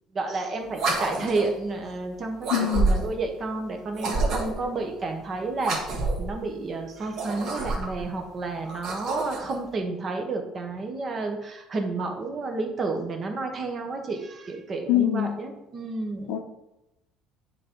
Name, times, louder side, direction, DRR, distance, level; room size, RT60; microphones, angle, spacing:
voice 1, 0.1-5.9 6.2-16.4, right 3 dB, 30° right, 4 dB, 1.0 m, -31 dB
sound 1, 0.7-1.6 2.4-3.2 3.9-4.7 5.6-6.3 7.0-8.0 8.6-9.6, right 3 dB, 50° right, 1.8 m, -28 dB
voice 2, 2.5-3.0 14.9-15.4 16.3-16.4, left 11 dB, 80° left, 6 dB, 0.8 m, -24 dB
9.1 x 3.8 x 4.5 m, 0.91 s
cardioid pair, 155°, 0 cm